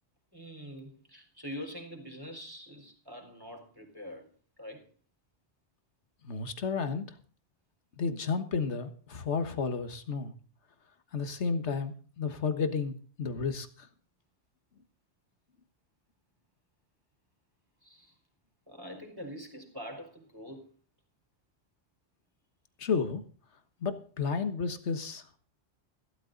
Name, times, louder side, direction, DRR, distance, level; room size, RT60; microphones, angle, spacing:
voice 1, 0.3-4.3 4.6-4.9 17.8-18.1 18.7-20.7, equal, 20° right, 3 dB, 4.1 m, -44 dB
voice 2, 6.2-7.0 8.0-10.3 11.1-13.7 22.8-23.2 23.8-25.4, left 5 dB, 75° left, 10 dB, 1.7 m, -32 dB
15.5 x 13.0 x 3.9 m, 0.40 s
omnidirectional pair, 1.2 m